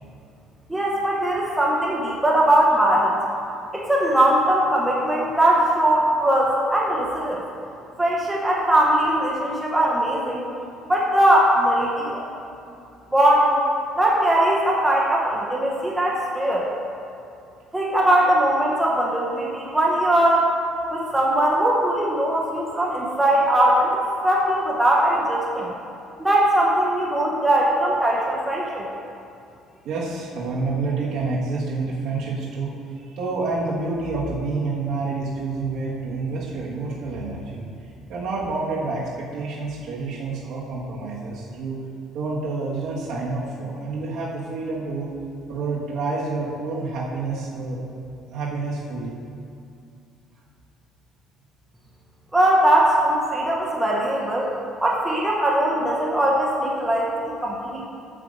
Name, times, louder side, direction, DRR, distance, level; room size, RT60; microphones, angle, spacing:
voice 1, 0.7-3.1 3.7-7.4 8.0-10.4 10.9-12.2 13.1-13.6 14.0-16.7 17.7-20.5 20.9-25.7 26.2-28.9 52.3-54.5 54.8-57.8, right 1 dB, 5° right, -4 dB, 0.8 m, -20 dB
voice 2, 29.8-37.7 38.1-41.8 42.1-45.1 45.5-47.8 48.3-49.2, right 3 dB, 55° right, -5 dB, 1.4 m, -28 dB
7.4 x 6.8 x 5.2 m, 2.6 s
cardioid pair, 175°, 0 cm